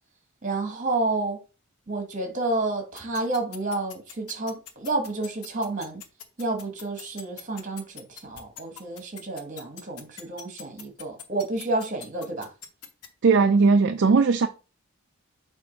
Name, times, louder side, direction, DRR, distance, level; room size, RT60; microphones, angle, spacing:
voice 1, 0.4-1.4 1.9-6.0 6.4-12.5, right 2 dB, 35° right, 1.4 m, -30 dB
sound 1, 3.0-13.1, left 8 dB, 85° left, 1.1 m, -41 dB
voice 2, 13.2-14.5, right 4 dB, 50° right, 0.4 m, -18 dB
6.9 x 2.6 x 5.2 m
head